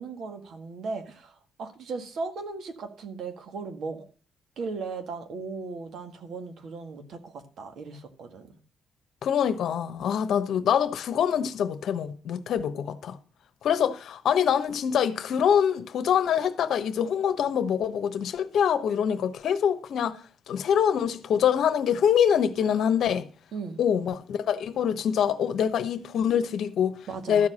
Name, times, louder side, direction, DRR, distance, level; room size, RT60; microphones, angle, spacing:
voice 1, 0.0-4.1 4.6-8.6 23.5-23.8 27.1-27.5, right 4 dB, 65° right, 1.8 m, -37 dB
voice 2, 9.2-13.2 13.6-20.2 20.5-23.3 23.8-27.0 27.3-27.5, left 8 dB, 70° left, 1.1 m, -25 dB
13.0 x 4.8 x 7.5 m
cardioid pair, 90°, 0 cm